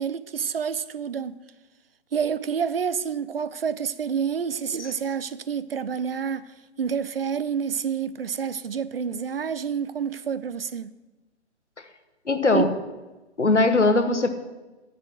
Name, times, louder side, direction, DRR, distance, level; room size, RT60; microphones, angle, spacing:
voice 1, 0.0-1.4 2.1-10.9 12.5-12.6, right 7 dB, 55° right, 0.5 m, -28 dB
voice 2, 12.3-12.7 13.4-14.3, left 3 dB, 80° left, 1.2 m, -20 dB
8.3 x 5.9 x 7.5 m
figure-of-eight pair, 135°, 35 cm